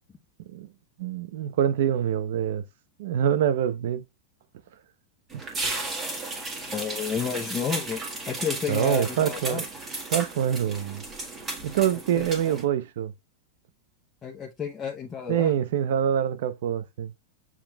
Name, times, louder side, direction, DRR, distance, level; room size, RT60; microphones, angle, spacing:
voice 1, 1.0-2.6 3.0-4.0 8.7-9.6 10.1-11.0 11.6-13.1 15.3-17.1, right 9 dB, 70° right, 0.7 m, -25 dB
sound 1, 5.3-12.6, right 2 dB, 15° right, 1.5 m, -34 dB
voice 2, 6.7-9.6 12.1-12.6 14.2-15.5, left 7 dB, 15° left, 0.7 m, -31 dB
7.2 x 3.0 x 2.3 m
supercardioid pair, 150°, 0 cm